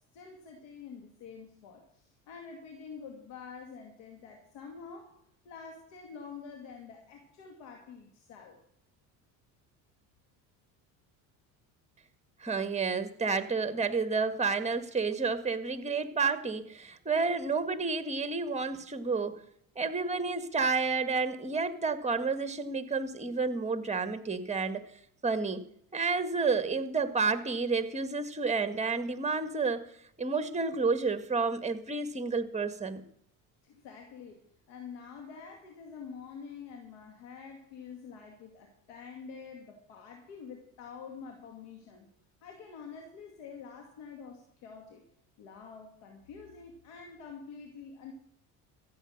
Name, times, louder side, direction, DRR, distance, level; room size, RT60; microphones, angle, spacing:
voice 1, 0.1-5.1 5.4-8.6 33.6-42.1 42.4-45.0 45.4-48.1, left 6 dB, 75° left, 2 dB, 2.5 m, -47 dB
voice 2, 12.4-19.4 19.7-24.9 25.2-25.6 25.9-29.8 30.2-33.0, right 4 dB, 15° right, 10 dB, 1.7 m, -30 dB
14.5 x 8.2 x 6.5 m, 0.70 s
supercardioid pair, 80°, 43 cm